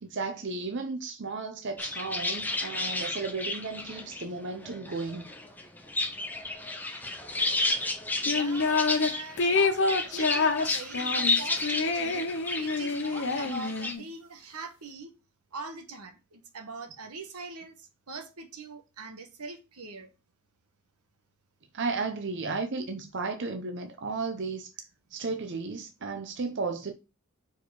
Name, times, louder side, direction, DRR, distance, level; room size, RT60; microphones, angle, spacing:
voice 1, 0.0-5.3 9.4-9.5 21.7-24.7 25.1-26.9, right 4 dB, 55° right, 0.7 m, -34 dB
sound 1, 1.8-13.9, left 2 dB, 10° left, 0.7 m, -32 dB
voice 2, 8.2-12.2 12.6-15.1 15.5-20.1, right 3 dB, 90° right, 1.3 m, -42 dB
sound 2, 8.3-9.1 9.4-14.0, left 4 dB, 55° left, 0.8 m, -27 dB
4.9 x 4.7 x 4.7 m
head